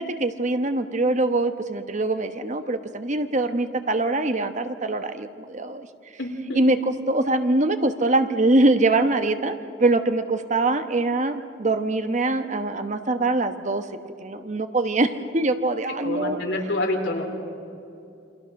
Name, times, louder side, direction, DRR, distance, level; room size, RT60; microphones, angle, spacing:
voice 1, 0.0-5.9 6.5-6.8 7.1-13.9 14.2-16.4, right 2 dB, 40° right, 9 dB, 1.0 m, -23 dB
voice 2, 6.2-6.6 16.0-17.3, left 1 dB, 65° left, 2 dB, 3.8 m, -27 dB
28.5 x 24.0 x 6.5 m, 2.6 s
head